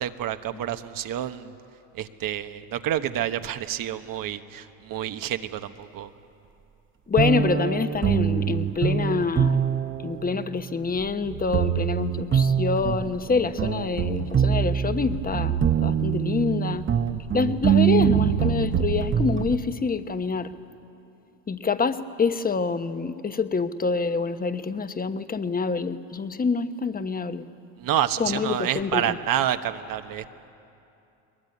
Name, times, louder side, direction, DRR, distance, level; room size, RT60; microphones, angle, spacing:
voice 1, 0.0-1.5 1.9-6.1 27.8-30.3, right 11 dB, 55° right, 9 dB, 1.3 m, -28 dB
voice 2, 7.1-9.6 10.0-16.9 17.3-20.5 21.5-27.4 28.2-29.2, left 4 dB, 20° left, 10 dB, 1.2 m, -26 dB
sound 1, 7.2-19.6, right 8 dB, 30° right, 1.0 m, -24 dB
21.5 x 21.0 x 9.7 m, 2.7 s
supercardioid pair, 90°, 40 cm